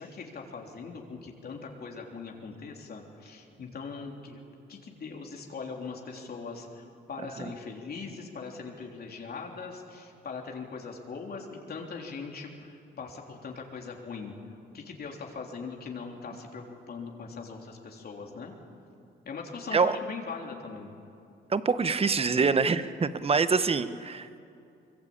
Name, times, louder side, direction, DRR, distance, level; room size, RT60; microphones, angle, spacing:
voice 1, 0.0-4.4 4.7-14.3 14.7-18.5 19.2-20.9, left 4 dB, 50° left, 0 dB, 3.5 m, -40 dB
voice 2, 21.5-24.4, right 4 dB, 30° right, 12 dB, 1.1 m, -25 dB
23.5 x 22.5 x 8.7 m, 2.6 s
cardioid pair, 90°, 20 cm